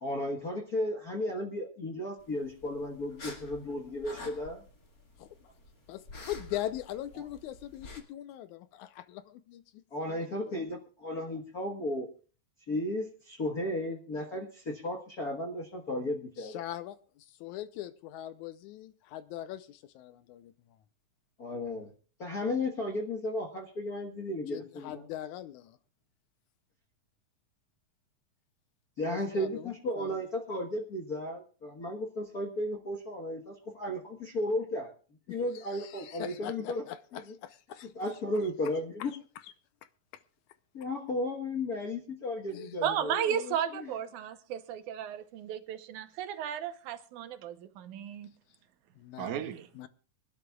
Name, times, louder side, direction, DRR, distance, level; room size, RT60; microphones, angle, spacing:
voice 1, 0.0-4.6 9.9-12.1 12.7-16.6 21.4-21.9 22.2-25.0 29.0-34.9 35.3-36.8 37.1-37.2 37.9-39.1 40.7-43.1 43.7-43.9, left 1 dB, 50° left, 1.1 m, -34 dB
sound 1, 2.2-8.0, left 2 dB, 30° left, 2.1 m, -49 dB
voice 2, 5.9-9.8 10.1-10.6 16.4-20.5 24.5-25.8 29.0-30.2 35.3-38.2 39.0-39.1 39.4-39.5 42.5-42.8 43.1-43.6 49.0-49.5 49.8-49.9, left 12 dB, 75° left, 2.0 m, -41 dB
voice 3, 42.8-48.3 49.2-49.7, right 9 dB, 75° right, 2.3 m, -34 dB
24.5 x 11.5 x 2.3 m
omnidirectional pair, 3.6 m